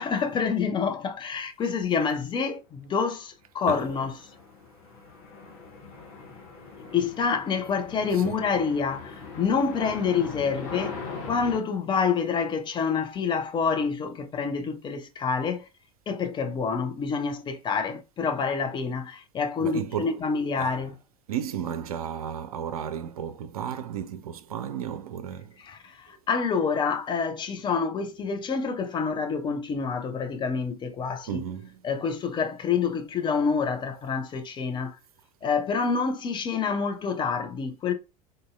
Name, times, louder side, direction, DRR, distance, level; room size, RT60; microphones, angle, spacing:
voice 1, 0.0-4.2 6.9-11.0 11.2-15.7 16.1-20.9 25.6-31.4 31.8-35.0 35.4-37.9, left 5 dB, 25° left, 0.5 m, -27 dB
sound 1, 3.9-11.6, left 4 dB, 50° left, 1.1 m, -41 dB
voice 2, 19.6-20.2 20.6-20.8 21.3-25.6 31.3-31.7, right 9 dB, 70° right, 0.4 m, -33 dB
3.8 x 2.6 x 2.3 m
figure-of-eight pair, 75°, 20 cm